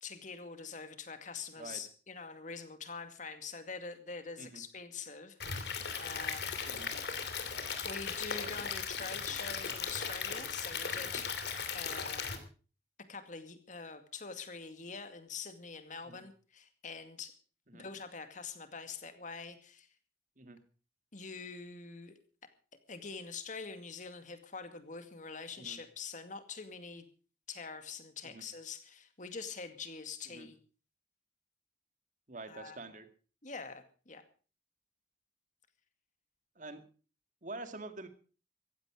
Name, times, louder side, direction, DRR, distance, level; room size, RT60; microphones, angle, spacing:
voice 1, 0.0-5.6 6.0-6.5 7.8-11.3 11.7-12.5 13.1-17.4 17.7-19.9 21.1-22.1 22.9-27.1 27.5-30.6 32.5-32.8 33.4-34.2, left 5 dB, 45° left, 9 dB, 2.2 m, -45 dB
Stream / Liquid, 5.4-12.4, left 6 dB, 70° left, 2.8 m, -37 dB
voice 2, 32.3-33.1 36.6-36.8 37.4-38.1, right 2 dB, 45° right, 8 dB, 2.2 m, -46 dB
15.5 x 15.0 x 5.0 m, 0.39 s
head